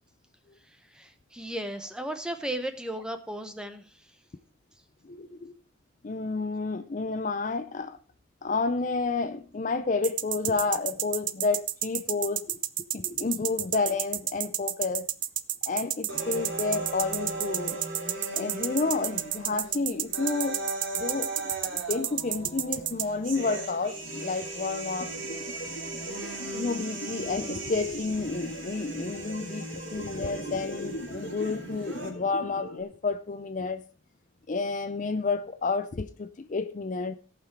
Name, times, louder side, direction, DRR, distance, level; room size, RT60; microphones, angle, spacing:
voice 1, 0.9-4.1, right 1 dB, 5° right, 0.9 m, -35 dB
voice 2, 5.0-5.5 6.0-8.0 8.4-12.6 12.9-15.1 15.7-17.8 18.3-20.6 20.9-25.1 26.4-33.8 34.5-37.1, left 4 dB, 40° left, 0.5 m, -30 dB
sound 1, 10.0-23.0, right 13 dB, 45° right, 0.5 m, -30 dB
sound 2, 16.1-32.1, right 2 dB, 75° right, 3.1 m, -38 dB
sound 3, 25.0-32.8, left 1 dB, 60° left, 1.9 m, -42 dB
17.0 x 5.8 x 4.7 m
head